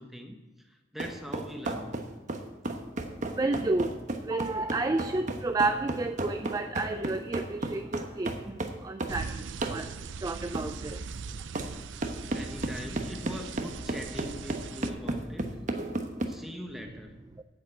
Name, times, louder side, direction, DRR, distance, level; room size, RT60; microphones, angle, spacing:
voice 1, 0.0-2.0 12.3-15.6 16.3-17.2, equal, ahead, 3 dB, 1.2 m, -42 dB
sound 1, 1.0-9.2 9.6-9.8 10.5-10.7 11.5-11.7 12.0-16.3, right 2 dB, 40° right, 1.1 m, -33 dB
voice 2, 3.1-3.9 4.2-9.9 10.2-11.2 17.4-17.5, right 2 dB, 20° right, 8 dB, 0.4 m, -31 dB
sound 2, 9.1-14.9, right 5 dB, 85° right, 0.5 m, -40 dB
8.9 x 8.7 x 7.6 m, 1.2 s
head